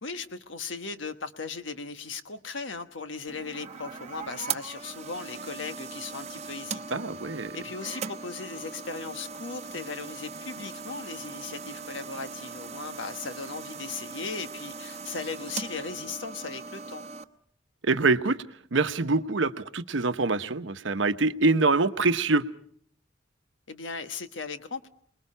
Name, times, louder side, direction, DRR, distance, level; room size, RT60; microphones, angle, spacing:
voice 1, 0.0-7.0 7.5-17.0 23.7-24.9, left 4 dB, 75° left, 9 dB, 1.3 m, -37 dB
sound 1, 3.3-17.2, right 5 dB, 35° right, 0.9 m, -39 dB
voice 2, 6.9-7.6 17.8-18.4 18.7-22.4, right 3 dB, 80° right, 10 dB, 1.0 m, -25 dB
29.0 x 21.0 x 5.6 m, 0.62 s
head